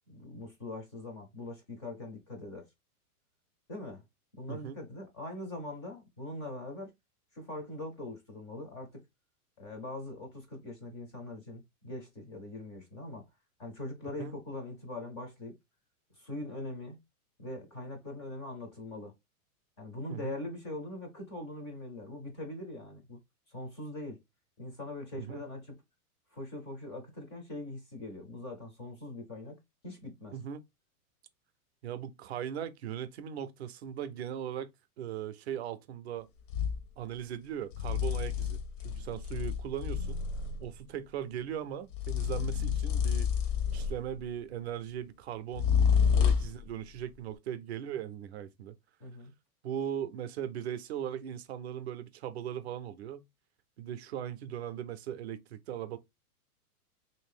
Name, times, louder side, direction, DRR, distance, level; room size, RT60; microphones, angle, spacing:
voice 1, 0.1-2.6 3.7-4.0 4.4-6.9 7.3-9.0 9.6-13.3 13.6-15.5 16.1-17.0 17.4-19.1 19.8-23.2 23.5-24.2 24.6-25.7 26.3-29.6 29.8-30.4 46.1-46.3 49.0-49.3, left 2 dB, 20° left, 0.4 m, -42 dB
voice 2, 25.1-25.5 30.3-30.6 31.8-34.7 35.0-36.3 37.0-38.6 38.8-40.2 40.6-43.3 43.7-45.7 46.1-48.8 49.6-53.2 53.8-56.0, right 9 dB, 50° right, 0.4 m, -39 dB
sound 1, 36.5-36.8 37.7-40.7 41.9-44.2 45.5-46.6, left 7 dB, 55° left, 0.7 m, -29 dB
3.2 x 2.7 x 3.4 m
supercardioid pair, 165°, 45 cm